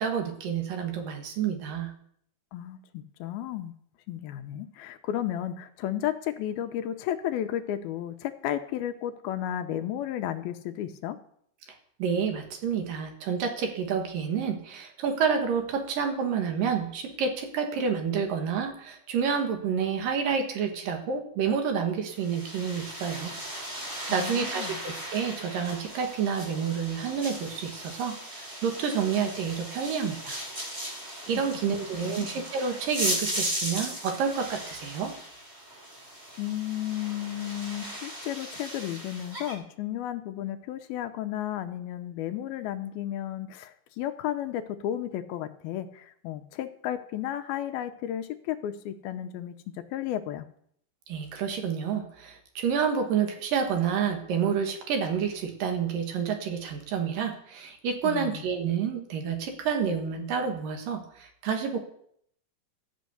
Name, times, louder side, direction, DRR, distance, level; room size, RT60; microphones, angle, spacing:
voice 1, 0.0-1.9 12.0-23.3 24.1-30.4 31.3-35.1 51.1-61.8, right 6 dB, 65° right, 4 dB, 2.9 m, -29 dB
voice 2, 2.5-3.7 4.1-11.2 24.1-24.8 31.3-31.4 32.0-32.3 36.4-50.5 58.0-58.4, left 11 dB, 80° left, 8 dB, 2.5 m, -33 dB
sound 1, 22.1-39.5, right 1 dB, 20° right, 2.1 m, -37 dB
13.5 x 6.2 x 8.0 m, 0.67 s
omnidirectional pair, 4.5 m